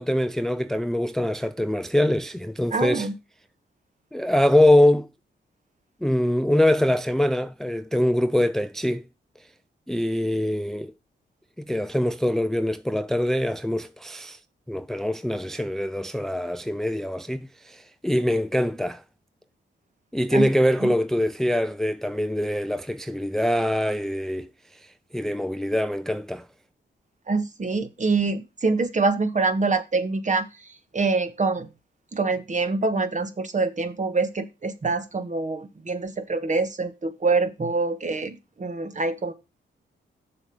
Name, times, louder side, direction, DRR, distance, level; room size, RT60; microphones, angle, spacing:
voice 1, 0.0-3.1 4.1-5.1 6.0-9.0 9.9-10.9 11.7-14.4 14.7-19.0 20.1-26.5, left 1 dB, ahead, 0.4 m, -23 dB
voice 2, 2.7-3.1 20.3-20.5 20.8-20.9 27.3-30.7 30.9-31.7 32.1-39.3, right 3 dB, 40° right, 1.4 m, -25 dB
7.0 x 6.2 x 5.4 m
cardioid pair, 70°, 20 cm